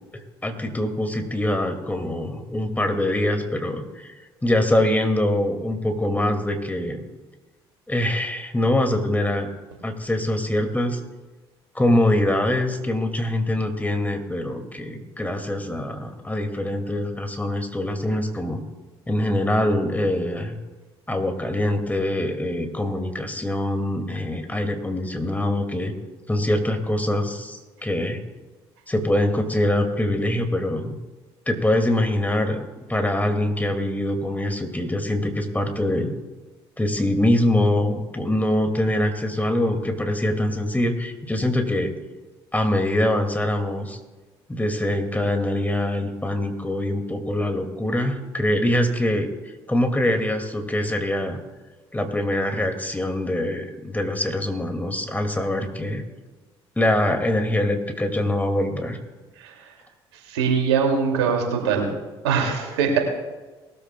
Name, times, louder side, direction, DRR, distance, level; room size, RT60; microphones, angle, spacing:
voice 1, 0.4-4.2 4.4-7.0 7.9-9.5 9.8-11.0 11.7-18.6 19.1-20.6 21.1-25.9 26.3-28.2 28.9-31.0 31.5-32.6 32.9-36.1 36.8-41.9 42.5-44.0 44.5-51.4 51.9-56.0 56.8-59.0, left 1 dB, 10° left, 5 dB, 2.4 m, -24 dB
voice 2, 60.3-61.9 62.2-63.0, right 6 dB, 80° right, 2 dB, 2.6 m, -22 dB
20.0 x 13.5 x 2.3 m, 1.2 s
hypercardioid pair, 55°, 14 cm